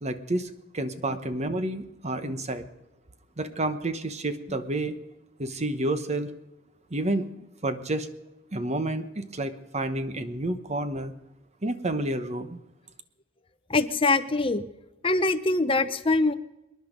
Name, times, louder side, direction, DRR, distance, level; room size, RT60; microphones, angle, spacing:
voice 1, 0.0-2.7 3.4-5.0 5.4-6.3 6.9-7.3 7.6-8.1 8.5-11.1 11.6-12.6, right 1 dB, 35° right, 10 dB, 1.1 m, -30 dB
voice 2, 13.7-14.7 15.0-16.3, left 3 dB, 25° left, 9 dB, 0.8 m, -23 dB
26.0 x 10.5 x 5.2 m, 0.97 s
head